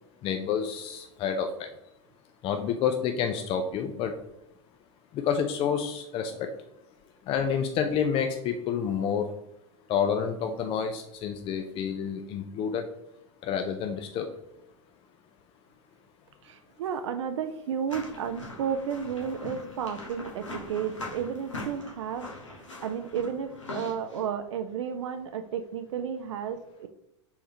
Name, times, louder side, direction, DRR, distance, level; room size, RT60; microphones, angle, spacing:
voice 1, 0.2-1.7 2.4-4.1 5.1-6.5 7.3-9.3 9.9-12.8 13.4-14.3, left 7 dB, 35° left, 6 dB, 0.4 m, -29 dB
voice 2, 16.4-26.9, right 7 dB, 70° right, 8 dB, 0.4 m, -33 dB
sound 1, 17.9-24.2, left 2 dB, 90° left, 1.2 m, -41 dB
4.2 x 3.6 x 2.8 m, 0.83 s
hypercardioid pair, 90°, 16 cm